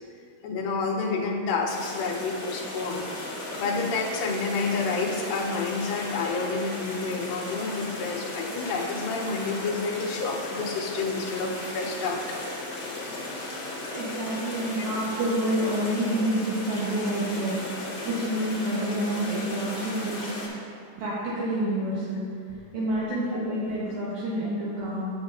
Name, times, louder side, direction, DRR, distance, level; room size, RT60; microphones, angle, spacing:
voice 1, 0.4-3.1 3.6-12.2 14.8-14.9 23.3-23.4, left 4 dB, 80° left, -3 dB, 2.3 m, -29 dB
sound 1, 1.7-20.5, left 2 dB, 55° left, 1.3 m, -36 dB
voice 2, 3.6-3.9 13.9-17.5 18.1-20.3 21.0-22.2 22.7-25.1, right 1 dB, 75° right, -9 dB, 2.9 m, -28 dB
9.4 x 7.1 x 2.5 m, 2.2 s
omnidirectional pair, 4.5 m